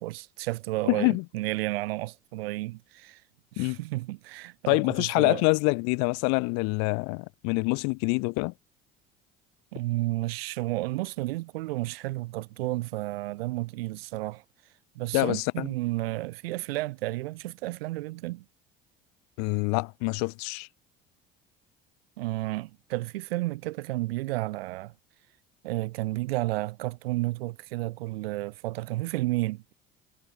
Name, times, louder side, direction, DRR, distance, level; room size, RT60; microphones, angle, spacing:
voice 1, 0.0-3.2 3.5-5.4 9.7-14.4 14.9-18.4 22.2-24.9 25.6-29.7, right 19 dB, 75° right, 4.8 m, -32 dB
voice 2, 0.9-1.2 3.6-3.8 4.7-8.5 15.1-15.7 19.4-20.7, left 35 dB, 65° left, 1.7 m, -26 dB
hypercardioid pair, 60°, 30 cm